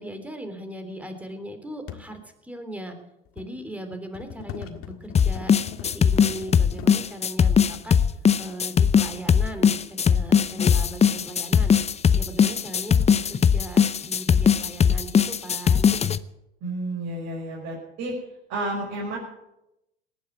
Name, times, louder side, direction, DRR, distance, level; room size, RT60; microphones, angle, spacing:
voice 1, 0.0-3.0 3.3-5.5 5.8-8.0 8.4-11.8 12.1-15.9, right 1 dB, 5° right, 7 dB, 3.3 m, -38 dB
sound 1, 1.9-2.1 3.0-3.6 4.1-7.0 8.4-8.5 9.2-9.8 10.9-11.0 11.2-11.3 11.7-11.8 12.5-14.0 14.4-14.5 14.7-15.0 15.3-15.5, left 10 dB, 45° left, 1.8 m, -41 dB
sound 2, 5.2-16.2, left 7 dB, 20° left, 0.7 m, -19 dB
voice 2, 16.6-18.2 18.5-19.2, right 2 dB, 55° right, -4 dB, 5.9 m, -31 dB
18.5 x 9.6 x 8.1 m, 0.87 s
hypercardioid pair, 85°, 32 cm